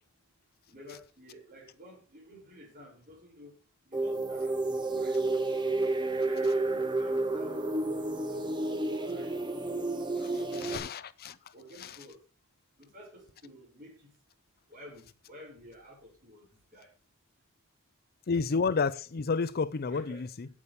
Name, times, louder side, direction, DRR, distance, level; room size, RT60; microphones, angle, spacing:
voice 1, 0.7-3.6 3.8-5.7 6.2-9.6 10.0-11.1 11.5-12.2 12.8-14.1 14.7-16.9 19.9-20.3, equal, 40° right, 6.1 m, -53 dB
sound 1, 3.9-10.8, right 2 dB, 20° right, 1.4 m, -30 dB
voice 2, 10.6-11.5 11.8-12.0 18.3-20.5, left 4 dB, 45° left, 0.5 m, -31 dB
8.6 x 8.4 x 6.9 m
head